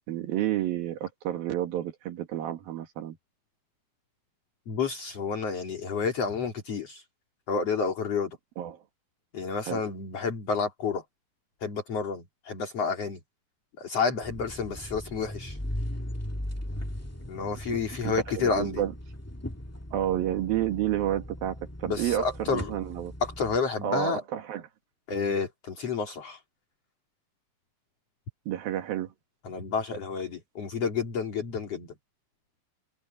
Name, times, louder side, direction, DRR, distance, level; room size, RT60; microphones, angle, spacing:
voice 1, 0.1-3.2 8.6-8.8 9.7-9.8 18.1-18.9 19.9-22.2 22.5-23.1 23.8-24.6 28.5-29.1, right 12 dB, 80° right, 3.6 m, -30 dB
voice 2, 4.7-7.0 7.5-8.4 9.3-11.0 11.6-13.2 13.8-15.6 17.3-18.8 21.9-22.7 23.2-24.2 25.1-26.4 29.4-31.9, left 5 dB, 45° left, 4.2 m, -30 dB
sound 1, 14.2-23.6, left 1 dB, 10° left, 0.6 m, -38 dB
omnidirectional pair, 4.1 m